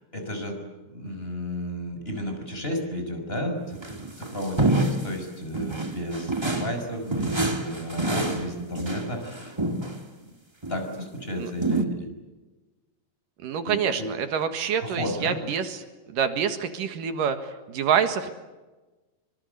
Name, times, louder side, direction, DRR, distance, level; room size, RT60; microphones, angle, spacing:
voice 1, 0.1-0.6 0.9-3.8 4.2-9.6 10.7-12.1 13.6-14.1 14.8-15.4, equal, 15° left, 5 dB, 5.9 m, -32 dB
sound 1, 3.7-5.2 5.5-6.8 7.1-10.0 10.6-10.9 11.6-11.8, right 2 dB, 20° right, 0.8 m, -27 dB
voice 2, 13.4-15.8 16.1-18.3, right 7 dB, 75° right, 8 dB, 3.3 m, -26 dB
26.0 x 25.5 x 8.1 m, 1.2 s
omnidirectional pair, 3.9 m